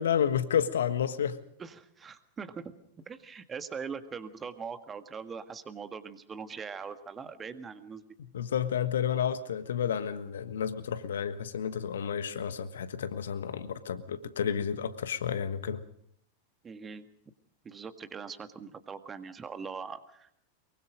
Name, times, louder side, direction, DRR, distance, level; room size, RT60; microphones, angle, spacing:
voice 1, 0.0-1.4 8.3-15.8, left 8 dB, 65° left, 1.3 m, -31 dB
voice 2, 1.6-2.8 3.1-8.0 16.6-17.1 17.6-20.3, right 5 dB, 20° right, 1.7 m, -41 dB
23.5 x 23.0 x 5.1 m
figure-of-eight pair, 90°, 0 cm